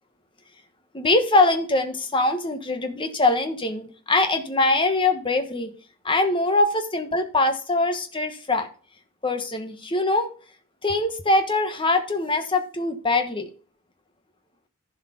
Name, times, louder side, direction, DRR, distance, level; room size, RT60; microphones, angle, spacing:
voice 1, 0.9-5.7 6.0-8.7 9.2-10.3 10.8-13.5, left 2 dB, 25° left, 7 dB, 1.3 m, -23 dB
11.5 x 4.8 x 5.9 m, 0.40 s
head